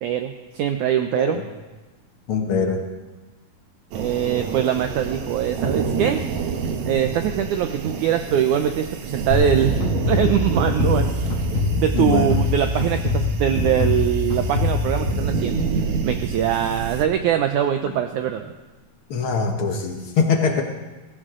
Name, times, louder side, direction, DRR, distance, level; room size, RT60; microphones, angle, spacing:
voice 1, 0.0-1.4 3.9-6.3 6.9-9.8 10.1-11.3 11.8-15.6 16.0-18.5, right 9 dB, 85° right, 7 dB, 1.7 m, -22 dB
voice 2, 2.3-2.8 11.9-12.3 19.1-20.6, left 5 dB, 80° left, 3 dB, 1.2 m, -22 dB
sound 1, 3.9-17.0, right 5 dB, 65° right, 2.1 m, -28 dB
sound 2, 9.3-15.9, left 3 dB, 50° left, 3.6 m, -24 dB
22.0 x 15.5 x 3.7 m, 1.2 s
omnidirectional pair, 4.3 m